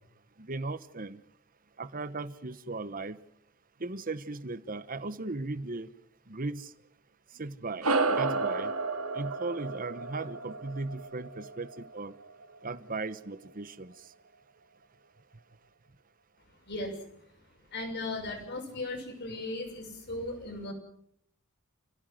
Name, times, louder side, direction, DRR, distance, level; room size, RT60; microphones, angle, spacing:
voice 1, 0.4-1.2 1.8-3.2 3.8-5.9 6.3-6.7 7.3-8.7 9.1-12.2 12.6-13.9, right 3 dB, 40° right, 14 dB, 1.2 m, -37 dB
sound 1, 7.8-12.6, right 3 dB, 75° right, 2.2 m, -32 dB
voice 2, 16.7-17.0 17.7-20.7, left 2 dB, 50° left, 4 dB, 6.3 m, -37 dB
29.5 x 17.0 x 7.7 m, 0.71 s
head